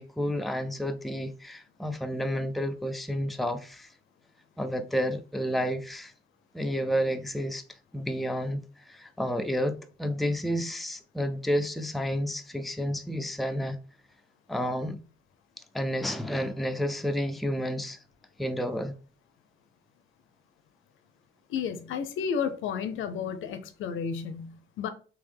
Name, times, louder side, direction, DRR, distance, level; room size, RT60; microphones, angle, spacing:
voice 1, 0.0-3.9 4.6-6.1 6.5-7.6 7.9-8.6 8.9-13.8 14.5-15.0 15.7-18.0 18.4-18.9, equal, ahead, 0.4 m, -30 dB
voice 2, 21.5-24.9, left 7 dB, 80° left, 0.6 m, -32 dB
3.6 x 3.0 x 3.4 m
cardioid pair, 90°, 20 cm